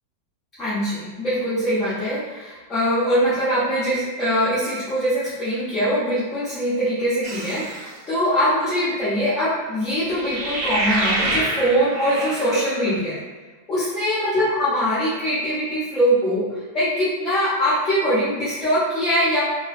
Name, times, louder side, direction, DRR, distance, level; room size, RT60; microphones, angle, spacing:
voice 1, 0.6-13.2 13.7-19.4, equal, 15° left, -12 dB, 0.6 m, -22 dB
sound 1, 7.2-7.9 10.0-12.9, right 1 dB, 40° right, 0.5 m, -26 dB
2.4 x 2.2 x 2.3 m, 1.3 s
supercardioid pair, 165°, 0 cm